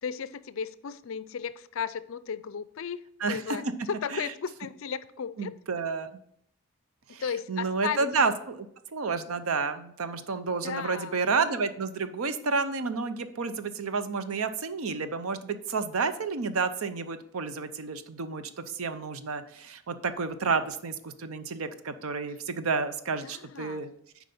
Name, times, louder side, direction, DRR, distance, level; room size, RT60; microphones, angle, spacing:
voice 1, 0.0-3.0 3.3-5.5 7.1-8.1 10.6-11.2 23.2-23.9, left 6 dB, 65° left, 15 dB, 0.4 m, -35 dB
voice 2, 3.2-3.7 4.1-4.3 5.4-6.2 7.1-7.2 7.5-8.7 8.9-23.9, right 4 dB, 75° right, 11 dB, 0.6 m, -30 dB
7.6 x 4.8 x 5.4 m, 0.73 s
head